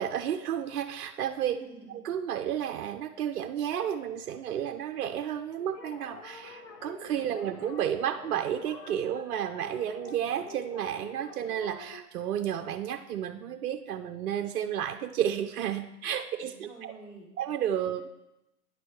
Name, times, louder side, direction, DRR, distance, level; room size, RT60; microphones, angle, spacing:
voice 1, 0.0-1.6 2.0-16.9 17.4-18.0, right 9 dB, 65° right, 7 dB, 0.7 m, -32 dB
voice 2, 1.5-2.0 7.3-7.6 16.4-17.3, right 3 dB, 5° right, -7 dB, 1.9 m, -49 dB
sound 1, 5.6-12.0, left 5 dB, 20° left, 0.6 m, -47 dB
9.6 x 6.0 x 4.6 m, 0.89 s
hypercardioid pair, 130°, 46 cm